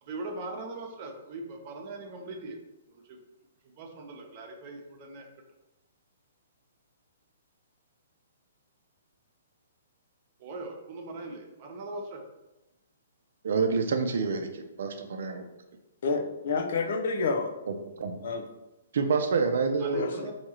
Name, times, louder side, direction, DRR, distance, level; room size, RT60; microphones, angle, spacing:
voice 1, 0.0-2.6 2.9-3.2 3.8-5.3 10.4-12.2 19.8-20.3, right 2 dB, 40° right, 2 dB, 0.8 m, -40 dB
voice 2, 13.4-15.5 18.0-18.2 18.9-20.0, right 4 dB, 70° right, 5 dB, 0.5 m, -27 dB
voice 3, 16.0-17.5 18.2-18.5 19.9-20.3, left 4 dB, 65° left, 5 dB, 0.6 m, -29 dB
4.6 x 2.8 x 2.9 m, 0.97 s
hypercardioid pair, 135°, 0 cm